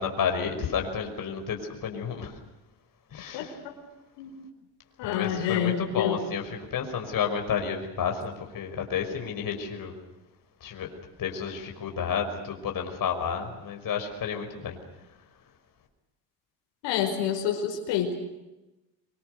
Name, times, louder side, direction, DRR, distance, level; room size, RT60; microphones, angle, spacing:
voice 1, 0.0-2.4 3.1-3.5 5.0-6.4 6.7-10.0 10.6-10.9 11.2-14.8, left 7 dB, 50° left, 3 dB, 5.7 m, -31 dB
voice 2, 3.3-3.7 4.2-4.3 5.0-6.2 16.8-18.1, left 9 dB, 80° left, 4 dB, 5.2 m, -28 dB
26.0 x 25.0 x 6.7 m, 0.99 s
cardioid pair, 115°, 43 cm